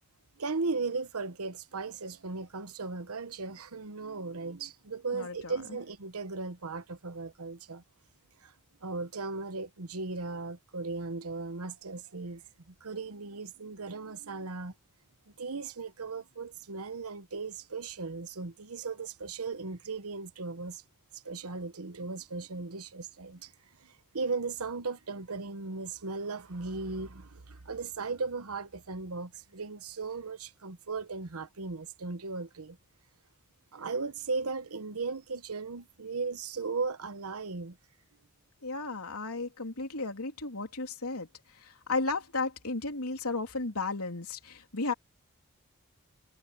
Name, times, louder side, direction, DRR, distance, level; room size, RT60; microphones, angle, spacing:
voice 1, 0.4-7.8 8.4-8.5 8.8-12.4 12.7-14.7 15.4-20.8 21.1-23.5 23.8-32.8 33.7-37.8, right 4 dB, 80° right, 1.1 m, -37 dB
voice 2, 5.1-5.6 38.6-44.9, left 3 dB, 80° left, 3.4 m, -34 dB
head